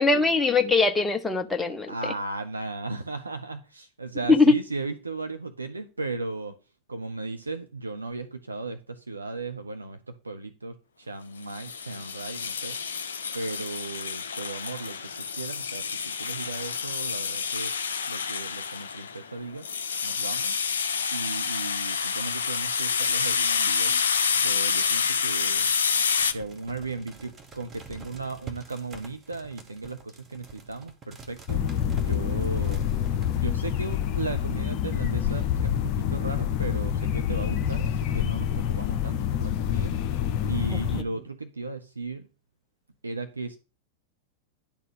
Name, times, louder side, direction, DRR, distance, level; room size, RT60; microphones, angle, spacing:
voice 1, 0.0-2.1 4.3-4.6 40.7-40.8, left 3 dB, 10° left, 0.8 m, -21 dB
voice 2, 1.9-6.5 6.9-12.8 13.3-17.8 18.1-19.7 20.0-20.5 21.1-24.0 24.4-25.7 26.3-31.6 31.9-32.8 33.3-39.9 40.5-42.3 43.0-43.6, right 3 dB, 80° right, 0.6 m, -36 dB
sound 1, 11.5-26.3, left 6 dB, 70° left, 0.6 m, -28 dB
sound 2, 26.2-33.3, right 4 dB, 20° right, 1.4 m, -47 dB
sound 3, 31.5-41.0, left 9 dB, 40° left, 0.9 m, -27 dB
10.5 x 4.3 x 6.1 m
figure-of-eight pair, 90°, 0 cm